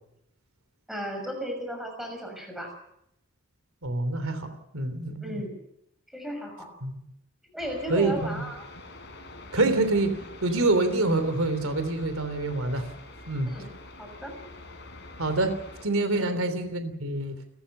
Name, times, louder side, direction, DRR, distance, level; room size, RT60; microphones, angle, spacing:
voice 1, 0.9-2.7 5.2-5.6 6.1-6.7 7.4-8.6 13.5-13.7 14.0-14.3 16.1-16.4, equal, ahead, 2 dB, 6.4 m, -35 dB
voice 2, 3.8-5.4 6.8-7.0 7.9-8.4 9.5-12.9 13.3-13.5 15.2-15.6 15.8-17.4, right 2 dB, 90° right, 9 dB, 3.2 m, -26 dB
sound 1, 7.6-15.9, left 2 dB, 55° left, 4.5 m, -46 dB
29.0 x 14.0 x 6.7 m, 0.78 s
head